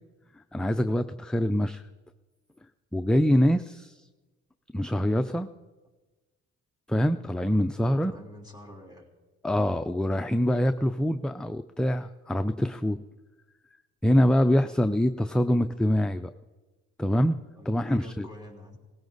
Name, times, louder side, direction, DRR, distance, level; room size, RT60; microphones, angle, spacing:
voice 1, 0.4-1.8 2.9-4.1 4.7-5.5 6.9-8.1 9.4-13.0 14.0-16.3 17.0-17.4 17.7-18.3, equal, 5° left, 8 dB, 0.4 m, -24 dB
voice 2, 7.7-9.1 17.5-18.8, left 1 dB, 15° right, 0 dB, 3.3 m, -46 dB
18.5 x 16.0 x 4.0 m, 1.2 s
cardioid pair, 90°, 30 cm